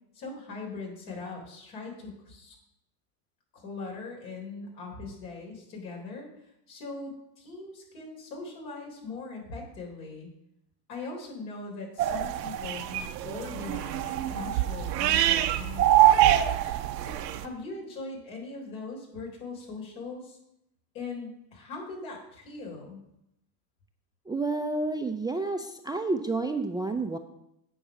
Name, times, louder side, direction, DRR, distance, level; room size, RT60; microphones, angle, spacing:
voice 1, 0.1-2.5 3.5-6.3 6.7-10.3 10.9-16.4 17.0-20.4 20.9-23.0, left 3 dB, 70° left, -1 dB, 3.7 m, -40 dB
sound 1, 12.0-17.5, right 13 dB, 80° right, 0.8 m, -24 dB
voice 2, 24.3-27.2, right 3 dB, 10° right, 7 dB, 0.4 m, -30 dB
8.5 x 5.4 x 6.0 m, 0.81 s
hypercardioid pair, 75°, 49 cm